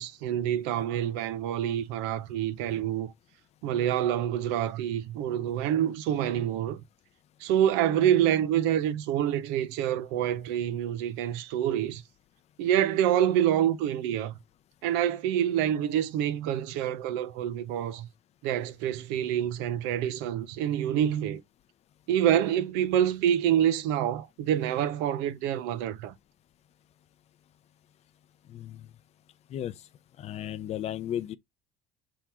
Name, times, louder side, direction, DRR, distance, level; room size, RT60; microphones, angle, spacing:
voice 1, 0.0-3.1 3.6-6.8 7.4-12.0 12.6-14.4 14.8-18.1 18.4-21.4 22.1-26.1, right 10 dB, 85° right, 0.7 m, -27 dB
voice 2, 28.5-28.8 29.5-29.7 30.2-31.4, left 11 dB, 40° left, 0.5 m, -34 dB
3.7 x 2.9 x 4.6 m
cardioid pair, 135°, 17 cm